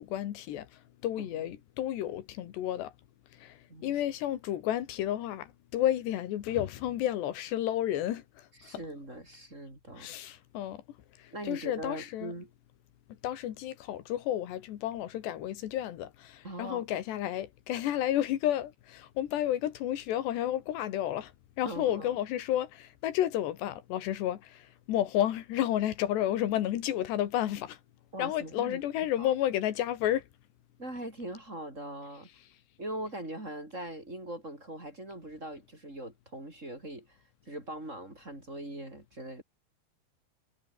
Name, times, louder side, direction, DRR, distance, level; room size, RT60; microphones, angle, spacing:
voice 1, 0.0-2.9 3.3-8.5 10.0-10.8 11.2-12.3 13.2-21.3 21.6-27.8 28.2-30.3, left 12 dB, 80° left, 3.8 m, -31 dB
voice 2, 8.6-10.1 11.3-12.5 16.4-16.8 21.6-22.2 28.1-29.3 30.8-32.3 32.8-37.2 37.4-39.4, right 1 dB, 15° right, 4.7 m, -41 dB
omnidirectional pair, 4.8 m